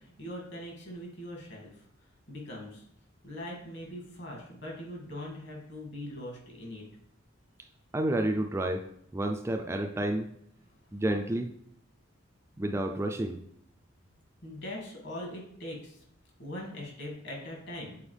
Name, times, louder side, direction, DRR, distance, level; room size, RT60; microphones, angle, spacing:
voice 1, 0.2-1.9 2.3-2.8 3.2-6.8 14.4-16.0 16.4-18.0, left 1 dB, 55° left, -1 dB, 1.9 m, -41 dB
voice 2, 7.9-8.8 9.1-10.3 10.9-11.5 12.6-13.4, right 1 dB, 15° right, 4 dB, 0.3 m, -30 dB
7.0 x 4.3 x 3.3 m, 0.70 s
head